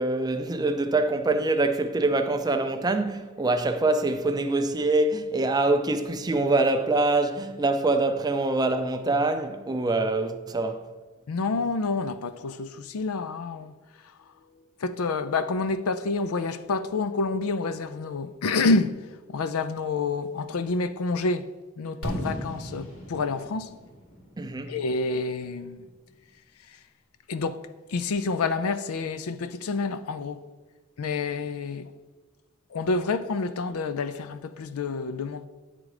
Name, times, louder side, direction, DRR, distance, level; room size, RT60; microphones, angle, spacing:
voice 1, 0.0-10.9 24.4-24.8, right 2 dB, 20° right, 0.5 m, -24 dB
voice 2, 11.3-13.7 14.8-19.0 19.3-21.5 21.8-23.7 24.7-25.9 27.3-27.6 27.9-30.4 31.0-31.9 32.7-35.5, left 3 dB, 85° left, 0.5 m, -28 dB
Fireworks, 22.0-25.9, equal, 70° left, 2.3 m, -37 dB
9.5 x 3.8 x 4.9 m
head